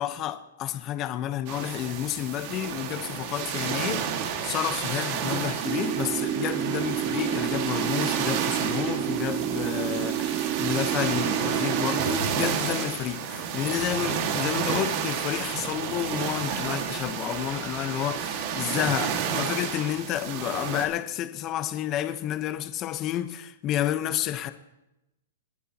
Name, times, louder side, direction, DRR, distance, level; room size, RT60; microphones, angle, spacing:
voice 1, 0.0-24.5, left 12 dB, 30° left, 1.0 m, -30 dB
sound 1, 1.5-20.9, right 7 dB, 45° right, 2.0 m, -31 dB
sound 2, 5.6-12.2, right 13 dB, 30° right, 0.5 m, -29 dB
29.5 x 10.0 x 3.0 m
hypercardioid pair, 150°, 0 cm